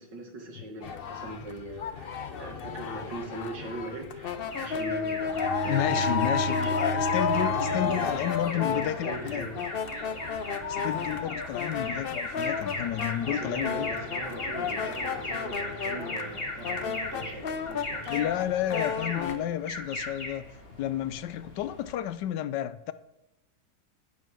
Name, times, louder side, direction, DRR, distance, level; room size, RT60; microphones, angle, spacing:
voice 1, 0.0-2.1 2.4-7.1 7.4-9.6 12.9-13.0 13.3-18.1, right 2 dB, 80° right, 2 dB, 2.6 m, -40 dB
sound 1, 0.8-19.4, left 6 dB, 55° left, 0.6 m, -32 dB
Alarm, 4.5-22.1, left 1 dB, 30° left, 2.4 m, -38 dB
Bowed string instrument, 5.2-9.0, right 2 dB, 40° right, 1.8 m, -36 dB
voice 2, 5.6-9.5 10.7-13.9 18.1-20.4 20.7-22.9, left 12 dB, 80° left, 14 dB, 1.2 m, -31 dB
9.4 x 8.3 x 6.1 m, 0.91 s
omnidirectional pair, 1.9 m